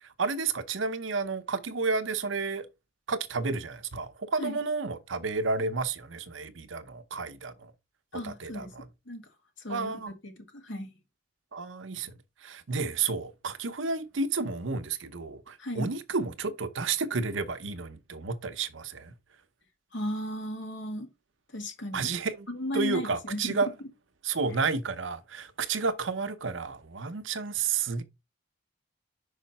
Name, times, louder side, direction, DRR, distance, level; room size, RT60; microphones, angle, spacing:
voice 1, 0.0-2.7 3.1-7.7 8.2-8.9 9.7-10.1 11.5-12.1 12.4-19.1 21.9-22.5 22.7-23.7 24.2-28.0, right 4 dB, 80° right, 0.8 m, -31 dB
voice 2, 8.1-8.7 9.1-9.3 9.6-10.9 15.6-15.9 19.9-21.1 21.5-22.1 22.5-23.7 24.5-24.6, left 1 dB, 75° left, 1.9 m, -35 dB
5.6 x 5.0 x 4.1 m
head